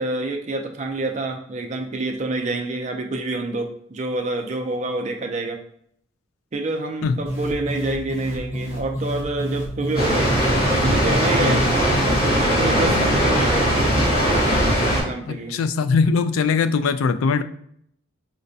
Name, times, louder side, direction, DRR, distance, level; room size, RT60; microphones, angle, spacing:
voice 1, 0.0-5.6 6.5-10.3 10.7-11.6 12.1-13.7 14.9-15.5, right 2 dB, 35° right, 3 dB, 0.4 m, -27 dB
sound 1, 7.3-12.4, equal, 10° right, 0.8 m, -30 dB
Water, 9.9-15.0, equal, 45° left, 1.4 m, -19 dB
voice 2, 15.3-17.4, left 5 dB, 90° left, 10 dB, 0.3 m, -21 dB
5.0 x 2.2 x 2.6 m, 0.68 s
head